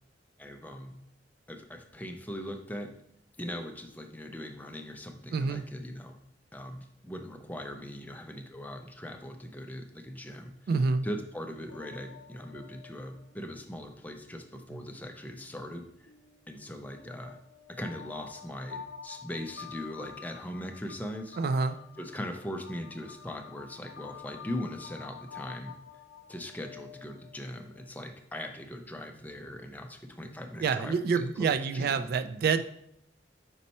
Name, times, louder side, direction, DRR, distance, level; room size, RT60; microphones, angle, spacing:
voice 1, 0.4-1.0 1.5-2.9 3.4-6.2 6.5-10.5 11.0-16.1 16.5-17.4 17.7-21.4 22.0-25.7 26.3-32.1, equal, 10° left, 4 dB, 0.5 m, -40 dB
voice 2, 5.3-5.6 10.7-11.1 14.7-14.8 21.4-21.8 30.6-32.6, right 5 dB, 55° right, 10 dB, 0.3 m, -27 dB
sound 1, 11.5-15.0 15.6-28.2, left 7 dB, 70° left, 0.5 m, -49 dB
5.4 x 4.2 x 4.2 m, 0.73 s
head